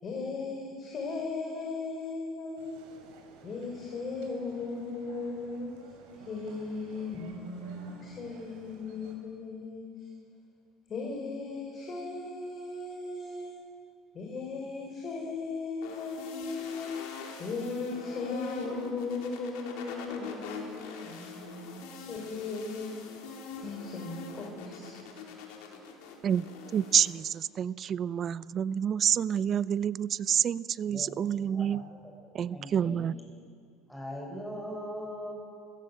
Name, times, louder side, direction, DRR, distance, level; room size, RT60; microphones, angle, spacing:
voice 1, 0.0-2.7 3.4-5.7 6.1-9.8 10.9-13.5 14.1-16.9 17.4-22.9 23.2-25.0, left 3 dB, 40° left, -1 dB, 5.4 m, -37 dB
sound 1, 2.6-9.2, right 5 dB, 80° right, 6.1 m, -54 dB
sound 2, 15.8-27.1, left 4 dB, 80° left, 4.0 m, -43 dB
voice 2, 26.7-31.8 32.3-33.1, right 8 dB, 45° right, 18 dB, 0.6 m, -28 dB
voice 3, 30.9-33.0 33.9-35.3, equal, 5° left, -1 dB, 7.0 m, -41 dB
26.5 x 16.0 x 7.9 m, 2.4 s
supercardioid pair, 95°, 0 cm